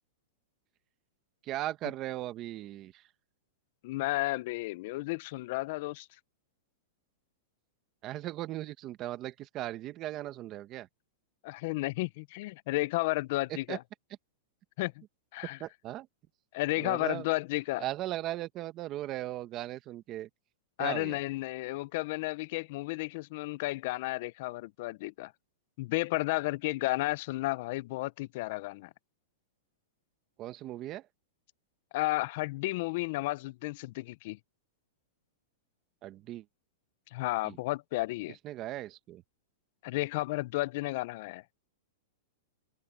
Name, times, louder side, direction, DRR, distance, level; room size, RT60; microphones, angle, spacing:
voice 1, 1.4-3.0 8.0-10.9 13.7-13.8 15.6-16.1 16.8-17.3 17.8-20.3 20.8-21.2 30.4-31.0 36.0-36.4 37.4-37.6 38.4-39.2, right 14 dB, 25° right, 1.2 m, -38 dB
voice 2, 3.8-6.1 11.4-13.8 14.8-14.9 15.3-15.6 16.5-17.8 20.8-25.3 25.8-28.9 31.9-34.4 37.1-38.4 39.8-41.4, left 20 dB, 45° left, 0.5 m, -32 dB
supercardioid pair, 165°, 0 cm